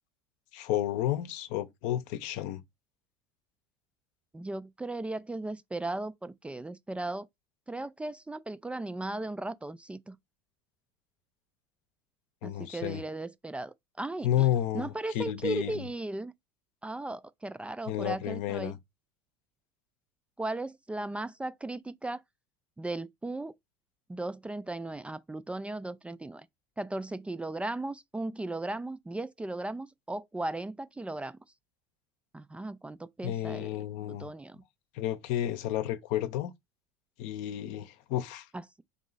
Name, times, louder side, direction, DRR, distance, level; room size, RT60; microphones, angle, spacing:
voice 1, 0.5-2.6 12.4-13.0 14.2-15.9 17.9-18.7 33.2-34.3 34.9-36.5 37.2-38.4, left 12 dB, 65° left, 0.7 m, -31 dB
voice 2, 4.3-7.3 7.7-10.2 12.4-14.5 14.7-16.3 16.8-18.8 20.4-22.2 22.8-23.5 24.1-26.5 26.8-31.4 32.3-33.7 34.1-34.6 38.5-38.8, right 2 dB, 10° right, 0.3 m, -36 dB
3.7 x 3.0 x 3.9 m
hypercardioid pair, 90°, 13 cm